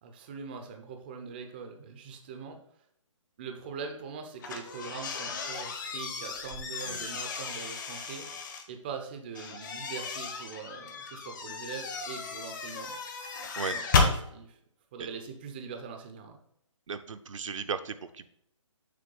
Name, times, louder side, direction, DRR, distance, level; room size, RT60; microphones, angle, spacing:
voice 1, 0.0-2.6 3.4-8.3 8.7-13.0 13.7-14.6 14.9-16.4, right 6 dB, 20° right, 4 dB, 0.4 m, -42 dB
sound 1, 4.4-8.6 9.4-14.2, left 4 dB, 35° left, 0.9 m, -33 dB
voice 2, 13.6-14.0 15.0-15.1 16.9-18.3, right 5 dB, 70° right, 10 dB, 0.6 m, -37 dB
6.7 x 3.2 x 5.3 m, 0.71 s
hypercardioid pair, 160°, 17 cm